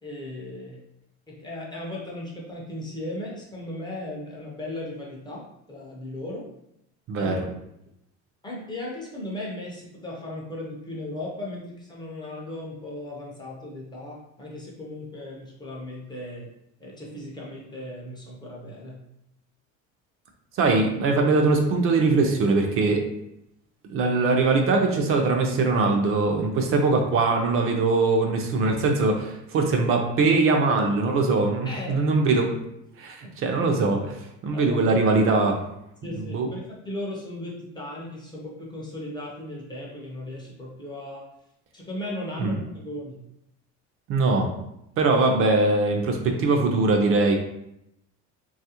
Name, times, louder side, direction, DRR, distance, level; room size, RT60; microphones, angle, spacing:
voice 1, 0.0-0.8 1.3-6.5 7.2-7.4 8.4-16.5 16.8-19.0 31.6-32.1 33.2-33.3 34.5-34.8 36.0-41.3 41.7-43.2, left 1 dB, 15° left, -3 dB, 0.4 m, -37 dB
voice 2, 7.1-7.4 20.6-23.0 23.9-32.5 33.0-35.6 36.2-36.5 42.4-42.5 44.1-44.5 45.0-47.4, right 3 dB, 50° right, 2 dB, 0.4 m, -22 dB
3.3 x 2.4 x 2.8 m, 0.81 s
cardioid pair, 170°, 30 cm